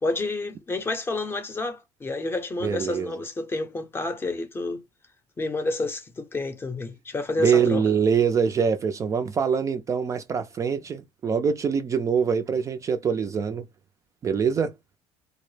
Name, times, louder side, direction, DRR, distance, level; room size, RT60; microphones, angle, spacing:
voice 1, 0.0-4.8 5.4-7.8, left 2 dB, 20° left, 0.6 m, -29 dB
voice 2, 2.6-3.1 7.4-13.7 14.2-14.7, right 6 dB, 25° right, 0.4 m, -24 dB
2.1 x 2.0 x 3.1 m
cardioid pair, 120°, 11 cm